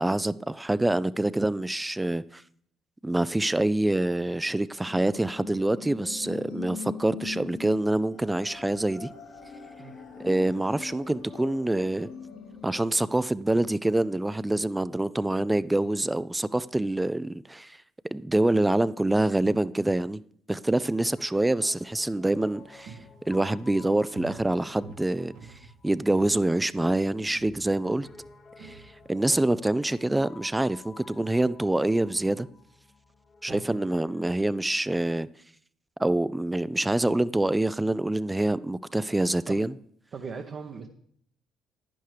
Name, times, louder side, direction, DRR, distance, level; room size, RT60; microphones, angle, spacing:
voice 1, 0.0-2.4 3.0-9.1 10.2-12.1 12.6-17.8 18.1-20.2 20.5-23.0 23.3-25.3 25.8-28.1 28.6-28.8 29.1-32.5 33.4-35.3 36.0-39.7, right 1 dB, 15° right, 0.3 m, -26 dB
sound 1, 4.9-12.9, left 5 dB, 65° left, 2.7 m, -42 dB
Piano, 20.7-34.4, left 4 dB, 40° left, 1.6 m, -52 dB
Walk footsteps, 22.1-26.4 26.7-27.0 27.3-29.6 29.9-30.0, right 5 dB, 75° right, 1.1 m, -49 dB
voice 2, 40.1-40.9, right 5 dB, 50° right, 0.9 m, -38 dB
10.5 x 10.0 x 3.3 m
hypercardioid pair, 55°, 0 cm